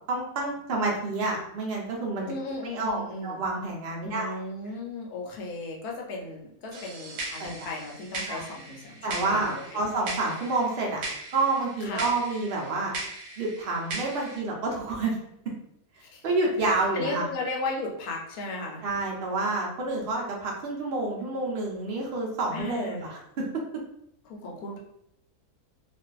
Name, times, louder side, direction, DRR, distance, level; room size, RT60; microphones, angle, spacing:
voice 1, 0.1-2.3 2.6-4.4 7.4-7.7 8.3-8.4 9.0-11.0 11.3-12.9 13.4-15.2 16.2-17.3 18.8-23.6, right 3 dB, 65° right, -2 dB, 0.5 m, -29 dB
voice 2, 2.3-3.4 4.0-9.6 11.8-12.1 16.0-16.2 16.6-18.8 22.5-23.1 24.3-24.8, left 2 dB, 80° left, -1 dB, 1.1 m, -35 dB
sound 1, 6.7-14.4, right 2 dB, 85° right, 1.1 m, -39 dB
2.5 x 2.3 x 2.3 m, 0.75 s
omnidirectional pair, 1.6 m